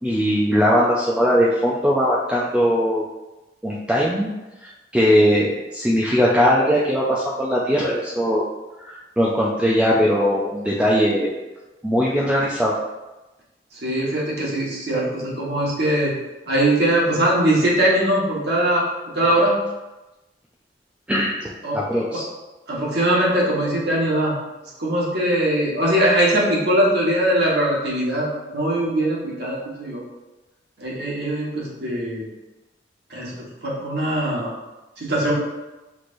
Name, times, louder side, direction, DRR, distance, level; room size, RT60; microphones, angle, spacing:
voice 1, 0.0-3.1 3.6-4.3 4.6-8.5 8.8-11.3 11.8-12.8 21.1-22.2, equal, 5° right, -5 dB, 0.4 m, -20 dB
voice 2, 13.8-16.1 16.5-18.9 19.1-19.5 21.6-22.0 22.7-24.3 24.8-30.0 30.8-32.2 33.1-34.5 35.0-35.3, right 1 dB, 65° right, -5 dB, 1.3 m, -21 dB
5.9 x 3.2 x 2.6 m, 1.1 s
head